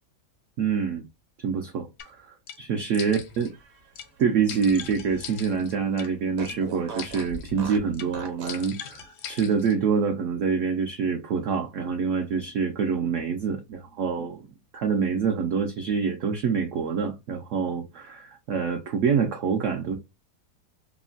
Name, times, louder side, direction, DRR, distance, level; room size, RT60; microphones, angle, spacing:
voice 1, 0.6-1.1 1.4-3.5 4.2-20.0, right 6 dB, 75° right, 0.7 m, -26 dB
sound 1, 2.0-2.1 2.5-2.6 2.9-3.5 4.0-4.1 4.5-6.1 6.5-6.6 7.0-7.5 7.9-8.1 8.5-9.8, left 8 dB, 80° left, 1.2 m, -40 dB
Fart, 3.4-5.4 5.7-5.8 6.3-8.7, right 3 dB, 55° right, 1.0 m, -41 dB
3.0 x 2.1 x 2.4 m
omnidirectional pair, 1.8 m